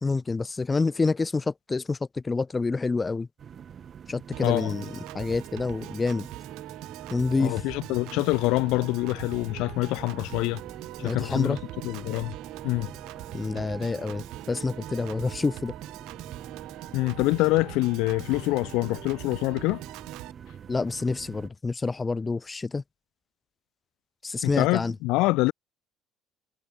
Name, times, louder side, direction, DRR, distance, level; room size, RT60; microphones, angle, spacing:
voice 1, 0.0-3.3 4.1-4.9 5.1-6.3 7.1-7.5 11.0-11.6 13.3-15.7 20.7-22.8 24.2-24.9, left 3 dB, 15° left, 0.3 m, -27 dB
sound 1, 3.4-21.5, right 8 dB, 35° right, 3.3 m, -45 dB
Piano / Organ, 4.3-20.3, right 19 dB, 75° right, 2.0 m, -42 dB
voice 2, 4.4-4.8 7.4-10.6 11.0-11.6 11.8-12.3 12.6-12.9 16.9-19.8 24.4-25.5, left 21 dB, 80° left, 0.4 m, -25 dB
cardioid pair, 145°, 0 cm